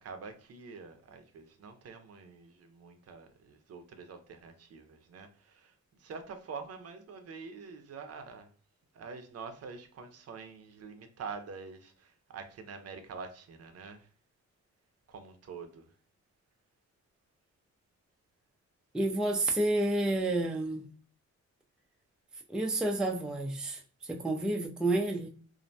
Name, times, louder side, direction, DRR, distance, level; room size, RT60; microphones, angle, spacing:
voice 1, 0.0-5.7 6.0-8.5 8.9-14.1 15.1-15.9, right 5 dB, 55° right, 0.5 m, -46 dB
voice 2, 18.9-20.9 22.5-25.3, right 2 dB, 5° right, 0.4 m, -30 dB
2.5 x 2.1 x 2.6 m
cardioid pair, 100°, 29 cm